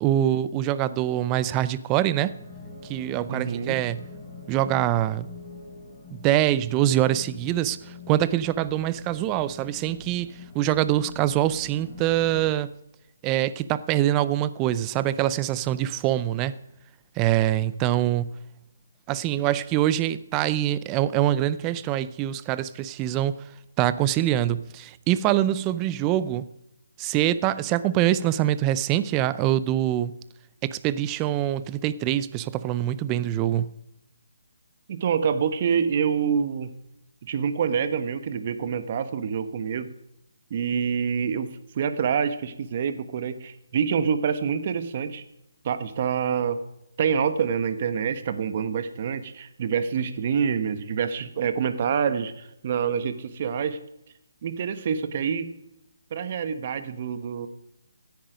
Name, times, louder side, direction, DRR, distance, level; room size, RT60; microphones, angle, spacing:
voice 1, 0.0-2.3 2.9-4.0 4.5-5.3 6.1-7.8 8.1-12.7 13.2-16.6 17.2-18.3 19.1-23.3 23.8-26.5 27.0-30.1 30.6-33.7, right 13 dB, 20° right, 16 dB, 0.5 m, -24 dB
sound 1, 2.3-12.5, left 3 dB, 5° left, 5.6 m, -44 dB
voice 2, 3.3-3.8 34.9-36.7 37.2-39.9 40.5-45.2 45.6-46.6 47.0-53.8 54.4-55.5 56.1-57.5, right 7 dB, 40° right, 11 dB, 1.2 m, -26 dB
16.0 x 10.5 x 5.1 m, 0.85 s
hypercardioid pair, 160°, 0 cm